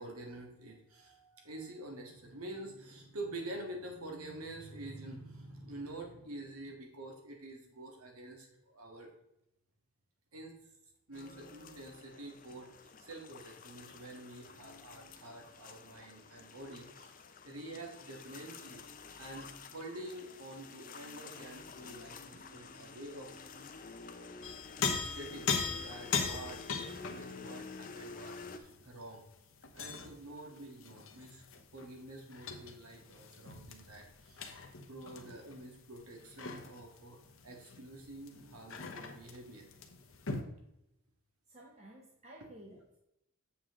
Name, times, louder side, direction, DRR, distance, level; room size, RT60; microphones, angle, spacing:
voice 1, 0.0-9.1 10.3-10.6 11.1-17.2 17.4-18.8 19.2-23.3 23.6-23.7 24.9-26.6 27.1-29.3 29.7-31.4 31.7-34.5 34.9-39.6, right 1 dB, 80° right, 2 dB, 1.9 m, -47 dB
sound 1, 11.1-28.6, left 4 dB, 40° left, 0.6 m, -50 dB
sound 2, 24.4-30.2 30.6-40.4, left 5 dB, 60° left, 1.0 m, -40 dB
voice 2, 41.5-43.0, right 1 dB, 30° right, -3 dB, 1.1 m, -54 dB
7.8 x 6.8 x 3.7 m, 0.83 s
head